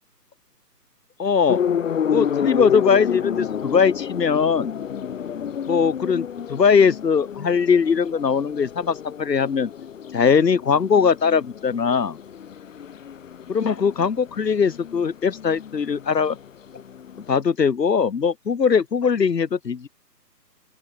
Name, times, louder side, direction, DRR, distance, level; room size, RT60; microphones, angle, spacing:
voice 1, 1.2-1.6 2.1-4.7 5.7-9.7 10.1-12.2 13.5-16.4 16.7-16.8 17.3-19.9, left 6 dB, 80° left, 1.3 m, -20 dB
sound 1, 1.5-17.4, left 8 dB, 50° left, 1.2 m, -30 dB
open air
figure-of-eight pair, 145°, 49 cm